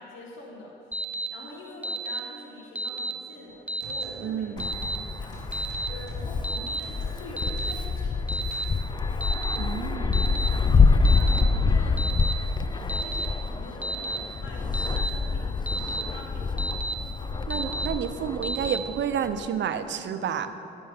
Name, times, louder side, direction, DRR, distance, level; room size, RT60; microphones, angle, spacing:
voice 1, 0.0-8.3 10.5-12.5 12.8-16.5 17.6-18.0, left 2 dB, 80° left, -1 dB, 1.9 m, -45 dB
Alarm, 0.9-1.3 1.8-2.2 2.8-3.1 3.7-4.0 4.6-5.0 5.5-5.9 6.4-6.8 7.4-7.7 8.3-8.6 9.2-9.6 10.1-10.5 11.0-11.4 12.0-12.3 12.9-13.3 13.8-14.2 14.7-15.1 15.7-16.0 16.6-16.9 17.5-17.9 18.4-18.8, right 1 dB, 5° right, 0.8 m, -31 dB
sound 1, 3.5-8.7, left 1 dB, 65° left, 2.8 m, -44 dB
voice 2, 4.2-4.7 9.6-10.2 17.5-20.5, right 8 dB, 65° right, 10 dB, 0.7 m, -30 dB
Wind, 4.6-19.5, left 4 dB, 20° left, 0.5 m, -26 dB
10.5 x 6.9 x 6.7 m, 2.9 s
cardioid pair, 90°, 20 cm